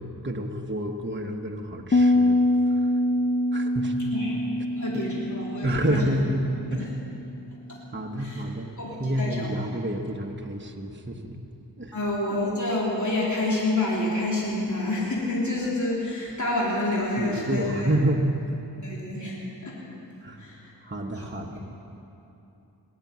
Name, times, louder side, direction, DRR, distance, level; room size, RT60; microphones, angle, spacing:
voice 1, 0.0-3.0 3.5-4.0 4.9-5.0 5.6-6.4 6.7-6.9 7.9-8.7 9.0-11.4 11.8-12.0 17.2-18.3 20.2-20.4 20.8-21.6, right 1 dB, 30° right, 2 dB, 1.2 m, -29 dB
Piano, 1.9-7.5, left 1 dB, 25° left, 0.4 m, -25 dB
voice 2, 4.7-6.1 7.7-7.8 8.2-8.4 8.8-9.5 11.9-17.9 18.8-19.8 20.4-20.7 21.2-21.5, left 2 dB, 45° left, -6 dB, 3.5 m, -28 dB
20.0 x 7.5 x 9.5 m, 2.9 s
wide cardioid pair, 50°, 40 cm